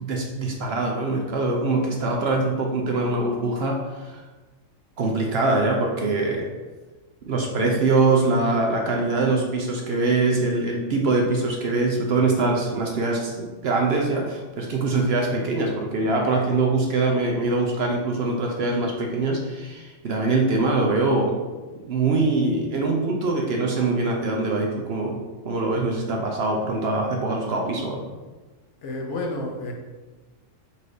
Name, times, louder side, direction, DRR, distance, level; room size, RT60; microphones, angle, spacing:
voice 1, 0.0-4.2 5.0-6.5 7.2-21.3 21.9-28.0, right 3 dB, 60° right, 0 dB, 0.7 m, -23 dB
voice 2, 28.8-29.7, left 2 dB, 65° left, 1 dB, 1.0 m, -30 dB
4.1 x 2.6 x 4.8 m, 1.2 s
omnidirectional pair, 1.4 m